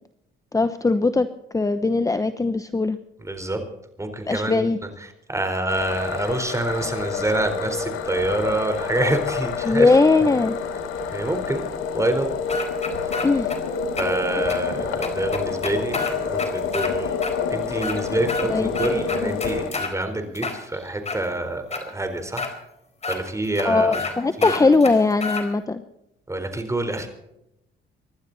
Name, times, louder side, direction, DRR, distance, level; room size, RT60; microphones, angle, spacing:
voice 1, 0.5-1.3 1.5-3.0 4.3-4.8 9.6-10.6 13.2-13.5 18.5-18.7 19.2-19.3 23.6-25.8, left 3 dB, 15° left, 10 dB, 0.9 m, -20 dB
voice 2, 3.2-3.6 4.0-4.7 5.0-10.0 11.1-11.6 11.9-12.3 13.0-13.2 14.0-17.2 17.5-22.5 23.1-24.0 24.4-24.6 26.3-27.1, right 2 dB, 15° right, 6 dB, 4.2 m, -27 dB
sound 1, 5.7-19.7, left 5 dB, 85° left, 2.9 m, -28 dB
sound 2, 12.5-13.6 14.0-14.1 14.5-14.6 15.0-16.9 17.2-17.3 17.7-18.5 18.7-19.9 20.4-21.2 21.7-21.8 22.4-22.5 23.0-23.2 23.6-23.7 23.9-24.1 24.4-25.4, left 4 dB, 35° left, 4.4 m, -29 dB
25.5 x 12.0 x 4.1 m, 0.85 s
cardioid pair, 90°, 20 cm